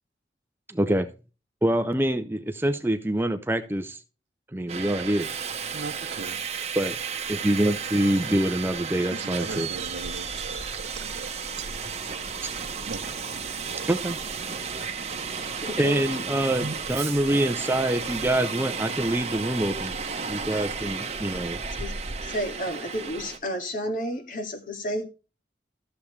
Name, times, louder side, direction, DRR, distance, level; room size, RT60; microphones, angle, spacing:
voice 1, 0.7-1.1 1.6-4.0 4.5-5.3 6.7-7.0 7.3-9.7 13.9-14.2 15.8-19.9 20.2-21.6, right 1 dB, 15° right, 0.6 m, -25 dB
Subway metro underground, 4.7-23.4, right 5 dB, 35° right, 1.2 m, -33 dB
voice 2, 5.7-6.5 9.1-11.8 12.8-13.0 13.4-14.0 16.6-16.7, right 4 dB, 75° right, 0.7 m, -38 dB
voice 3, 15.6-16.2 20.5-20.6 21.8-21.9 22.2-25.1, equal, 50° left, 2.1 m, -32 dB
14.0 x 7.2 x 3.2 m
head